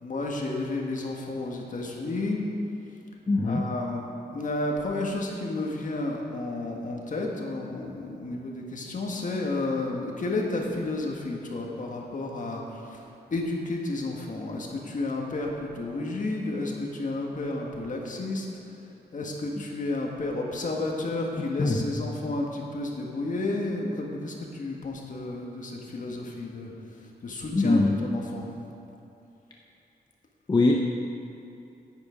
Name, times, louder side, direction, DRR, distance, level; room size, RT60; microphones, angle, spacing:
voice 1, 0.0-2.4 3.4-4.0 4.3-13.0 13.3-18.5 19.1-26.7 27.2-28.5, left 2 dB, 45° left, 0 dB, 1.6 m, -31 dB
voice 2, 3.3-3.6 21.6-21.9 27.5-28.0 30.5-30.8, left 2 dB, 25° left, 0 dB, 0.6 m, -22 dB
10.5 x 9.5 x 5.0 m, 2.8 s
wide cardioid pair, 135°, 18 cm